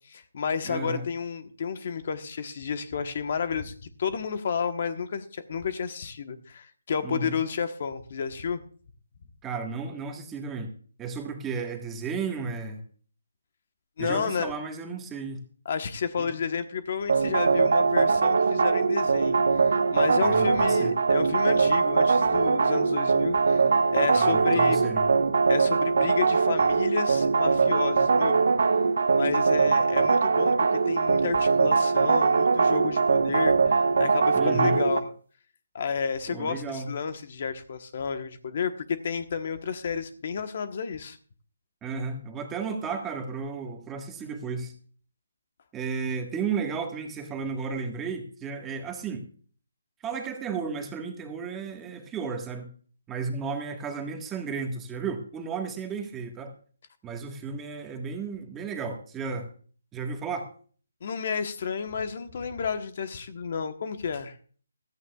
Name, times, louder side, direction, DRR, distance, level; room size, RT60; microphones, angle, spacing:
voice 1, 0.0-8.6 14.0-14.5 15.6-24.8 25.5-28.4 29.1-35.0 35.7-41.2 61.0-64.4, left 6 dB, 45° left, 9 dB, 1.1 m, -31 dB
voice 2, 0.6-1.0 7.0-7.3 9.4-10.7 11.0-12.8 14.0-15.4 16.2-16.4 20.2-20.9 24.1-25.1 34.3-34.8 36.3-36.9 41.8-44.7 45.7-49.2 50.0-52.7 53.1-56.5 57.0-59.5 59.9-60.5, right 5 dB, 10° right, 3 dB, 1.5 m, -33 dB
sound 1, 17.1-35.0, right 4 dB, 65° right, 1.1 m, -22 dB
15.5 x 14.0 x 2.4 m, 0.43 s
hypercardioid pair, 160°, 0 cm